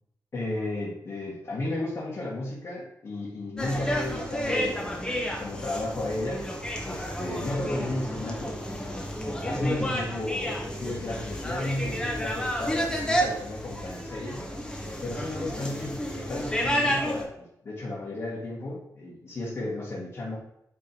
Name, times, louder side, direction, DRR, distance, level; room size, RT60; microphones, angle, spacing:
voice 1, 0.3-5.1 5.4-6.5 6.9-8.6 9.3-14.5 15.0-20.4, left 2 dB, 45° left, -7 dB, 1.7 m, -33 dB
sound 1, 3.6-17.2, equal, 10° left, 1.2 m, -31 dB
8.5 x 3.5 x 4.5 m, 0.76 s
wide cardioid pair, 150°, 7 cm